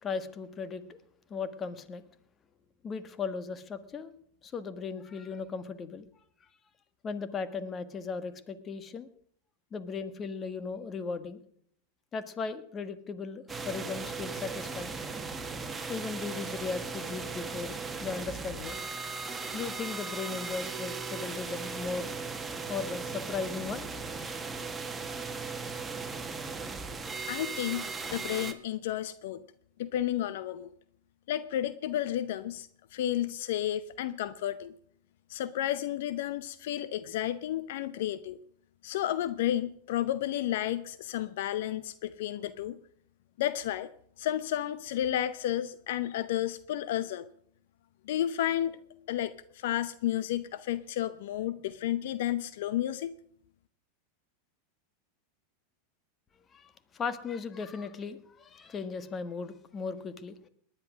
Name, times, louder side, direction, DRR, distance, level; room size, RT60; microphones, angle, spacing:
voice 1, 0.0-1.0 1.3-2.0 2.8-4.1 4.4-6.1 7.0-9.1 9.7-11.4 12.1-15.1 15.9-18.8 19.3-22.2 22.7-23.9 24.6-24.7 56.5-60.5, left 5 dB, 30° left, 13 dB, 1.6 m, -37 dB
sound 1, 13.5-28.5, right 4 dB, 15° right, 1.9 m, -37 dB
voice 2, 27.3-29.4 29.8-30.7 31.3-34.7 35.3-38.4 38.8-42.8 43.4-43.9 44.2-47.2 48.1-48.8 49.1-53.2, left 12 dB, 70° left, 15 dB, 0.7 m, -32 dB
19.0 x 10.5 x 6.3 m, 0.64 s
hypercardioid pair, 105°, 0 cm